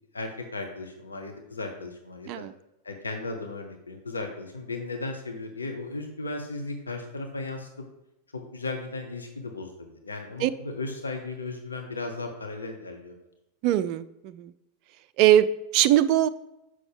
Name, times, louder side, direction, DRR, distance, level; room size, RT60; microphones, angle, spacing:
voice 1, 0.1-2.5 2.8-7.7 8.3-13.1, left 3 dB, 75° left, 3 dB, 0.8 m, -36 dB
voice 2, 13.6-14.5 15.2-16.3, right 12 dB, 40° right, 13 dB, 0.3 m, -21 dB
6.3 x 6.0 x 3.6 m, 0.91 s
figure-of-eight pair, 90°, 0 cm